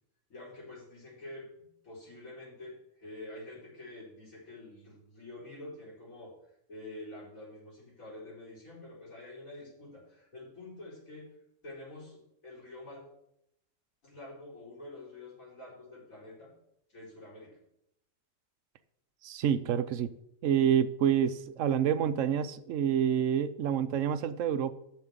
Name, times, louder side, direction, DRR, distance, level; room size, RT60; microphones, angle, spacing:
voice 1, 0.3-6.3 6.7-11.3 11.6-13.0 14.0-16.5 16.9-17.6, left 2 dB, 85° left, -6 dB, 5.0 m, -47 dB
voice 2, 19.2-20.1 20.4-24.7, right 9 dB, 75° right, 12 dB, 1.0 m, -28 dB
7.3 x 6.7 x 7.8 m, 0.78 s
omnidirectional pair, 1.4 m